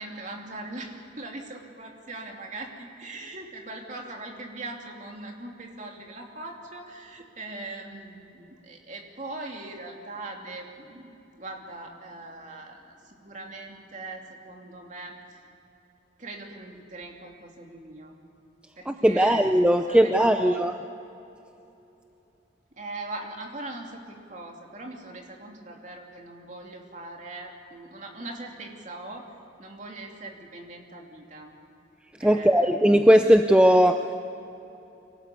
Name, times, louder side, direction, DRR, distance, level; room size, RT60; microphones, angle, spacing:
voice 1, 0.0-15.4 16.2-18.2 18.8-20.7 22.7-29.3 29.6-31.5 32.2-33.0, right 2 dB, 40° right, 1 dB, 2.9 m, -41 dB
voice 2, 18.9-20.7 32.2-34.0, equal, 5° right, 6 dB, 0.5 m, -18 dB
25.0 x 18.0 x 8.3 m, 2.9 s
head